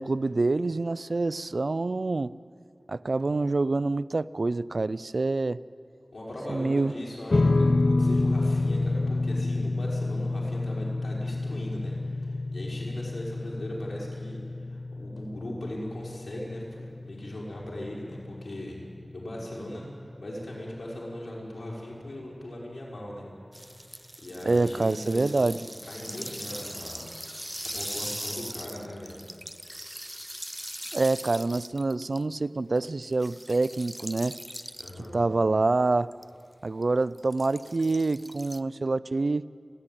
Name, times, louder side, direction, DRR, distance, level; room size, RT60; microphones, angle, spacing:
voice 1, 0.0-2.3 2.9-5.6 6.5-6.9 24.4-25.6 30.9-34.4 35.1-36.1 36.6-39.5, right 3 dB, 70° right, 17 dB, 0.4 m, -26 dB
sound 1, 3.2-3.9 6.3-7.1 9.3-10.1 12.2-13.0 15.2-15.9 18.1-18.9, equal, 35° left, 5.5 m, -54 dB
voice 2, 6.1-18.8 19.1-19.8 20.2-23.2 24.2-27.1 27.7-29.2 34.8-35.2, left 1 dB, 85° left, -4 dB, 5.2 m, -39 dB
sound 2, 7.3-19.8, left 2 dB, 70° left, 0.7 m, -29 dB
sound 3, 23.5-32.3 32.8-35.1 36.1-36.3 36.8-38.6, equal, 10° right, 0.5 m, -40 dB
29.5 x 11.5 x 9.1 m, 2.5 s
wide cardioid pair, 55°, 0 cm